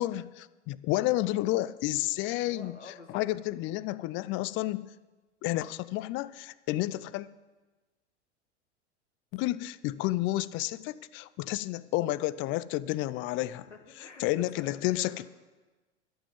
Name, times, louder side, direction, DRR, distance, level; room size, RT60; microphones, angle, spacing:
voice 1, 0.0-2.8 3.1-4.9 5.4-7.3 9.3-13.6 14.2-15.3, left 16 dB, 35° left, 18 dB, 0.5 m, -31 dB
voice 2, 2.3-3.2 13.3-15.2, left 4 dB, 90° left, 5 dB, 1.6 m, -49 dB
12.0 x 7.5 x 8.8 m, 1.2 s
figure-of-eight pair, 85°, 35 cm